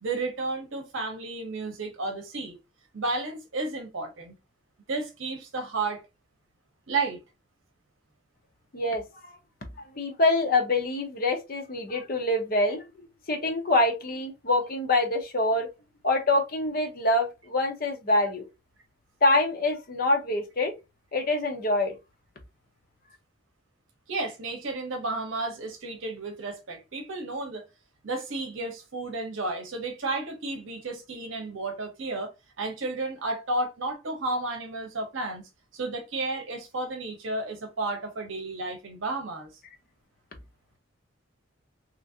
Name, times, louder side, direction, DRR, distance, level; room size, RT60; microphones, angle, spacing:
voice 1, 0.0-2.6 2.9-4.3 4.9-6.0 6.9-7.2 24.1-27.6 28.0-32.3 32.6-39.5, right 2 dB, 70° right, 0.8 m, -32 dB
voice 2, 9.8-12.8 13.3-15.7 16.0-18.4 19.2-20.7 21.1-21.9, left 2 dB, 45° left, 0.7 m, -25 dB
3.0 x 2.5 x 2.5 m
head